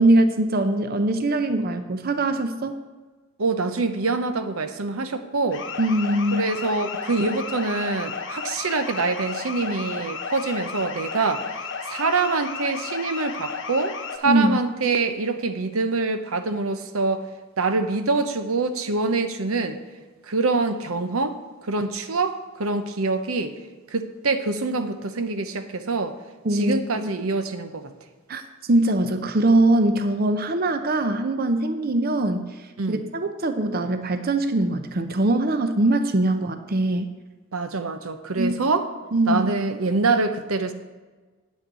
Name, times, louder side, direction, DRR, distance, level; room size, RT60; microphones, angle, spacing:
voice 1, 0.0-2.8 5.8-6.5 14.2-14.6 26.4-27.1 28.3-37.1 38.4-38.5 39.1-39.5, right 1 dB, 45° right, 8 dB, 0.7 m, -22 dB
voice 2, 3.4-5.6 6.3-11.5 11.9-17.3 17.6-19.8 20.3-21.4 21.7-23.5 23.9-26.2 26.5-27.8 32.8-33.0 37.5-38.9 39.3-40.7, right 3 dB, 85° right, 9 dB, 0.8 m, -25 dB
sound 1, 5.5-14.2, left 5 dB, 60° left, 1.0 m, -33 dB
9.2 x 6.4 x 8.1 m, 1.3 s
head